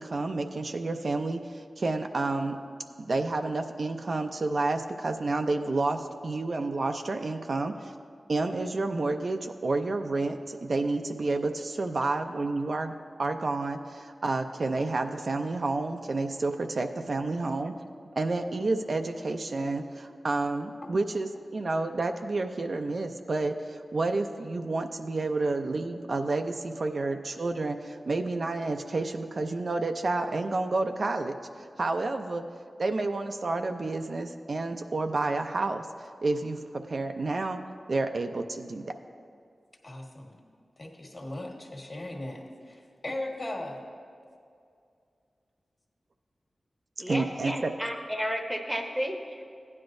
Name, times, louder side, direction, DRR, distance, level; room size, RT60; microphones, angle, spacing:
voice 1, 0.0-2.6 3.0-7.9 8.3-12.9 13.2-17.7 18.2-32.4 32.8-35.9 36.2-37.6 37.9-38.8 47.1-47.7, right 3 dB, 55° right, 6 dB, 0.5 m, -30 dB
voice 2, 39.8-40.4 40.8-43.8, left 1 dB, 40° left, 0 dB, 1.5 m, -38 dB
voice 3, 47.0-49.4, equal, 10° right, 2 dB, 0.8 m, -32 dB
15.5 x 9.6 x 2.6 m, 2.4 s
wide cardioid pair, 100°, 0 cm